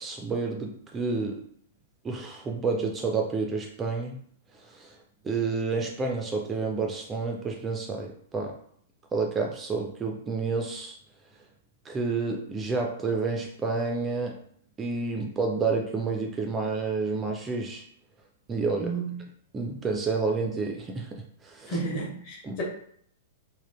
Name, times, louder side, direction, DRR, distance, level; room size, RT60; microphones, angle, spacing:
voice 1, 0.0-1.4 2.0-4.2 4.6-5.0 5.2-8.6 9.1-11.0 11.9-14.4 14.8-17.8 18.5-19.0 19.5-21.9 22.4-22.6, right 4 dB, 15° right, 2 dB, 0.3 m, -29 dB
voice 2, 18.8-19.1 21.7-22.6, right 3 dB, 40° left, -2 dB, 1.0 m, -32 dB
3.5 x 2.2 x 2.4 m, 0.63 s
figure-of-eight pair, 105°, 0 cm